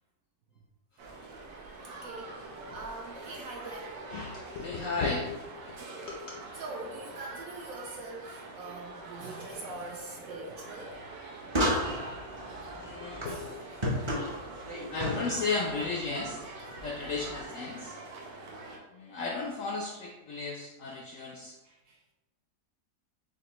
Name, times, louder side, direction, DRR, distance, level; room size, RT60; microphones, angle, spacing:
sound 1, 1.0-18.8, right 2 dB, 90° right, 1.4 m, -45 dB
voice 1, 1.5-4.0 5.9-6.2 6.5-11.0 11.4-11.9 13.2-13.9 18.3-18.4 21.6-22.0, right 2 dB, 70° right, 0 dB, 0.9 m, -44 dB
voice 2, 4.1-5.4 5.7-5.8 6.1-6.2 12.8-13.4 14.9-16.4 16.7-17.9 18.9-21.5, left 3 dB, 75° left, 0 dB, 0.7 m, -34 dB
sound 2, 11.5-17.4, equal, 35° right, 0.4 m, -34 dB
6.6 x 2.2 x 3.0 m, 1.1 s
omnidirectional pair, 1.8 m